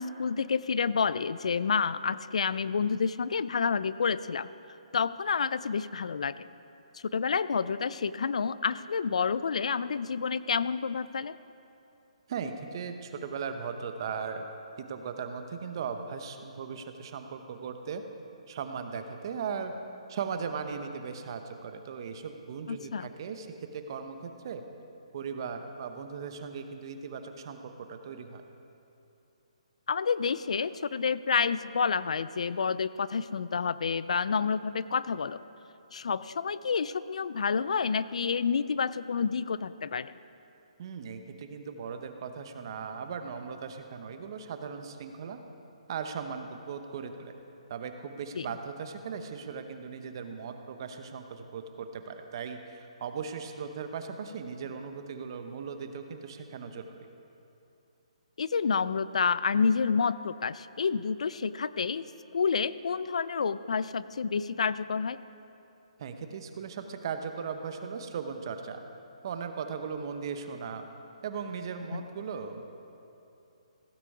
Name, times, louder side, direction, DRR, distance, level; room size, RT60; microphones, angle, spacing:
voice 1, 0.0-4.5 4.9-6.4 6.9-11.4 22.7-23.1 29.9-35.4 35.9-40.1 48.3-48.5 58.4-62.0 62.3-65.2 71.9-72.1, left 5 dB, 75° left, 16 dB, 0.4 m, -29 dB
voice 2, 12.3-14.5 14.9-18.0 18.5-19.7 20.1-23.5 23.7-24.6 25.1-28.4 40.8-45.4 45.9-47.3 47.7-57.1 66.0-68.8 69.2-70.8 71.2-72.7, right 6 dB, 40° right, 7 dB, 0.9 m, -38 dB
16.0 x 8.3 x 4.9 m, 2.8 s
hypercardioid pair, 160°, 4 cm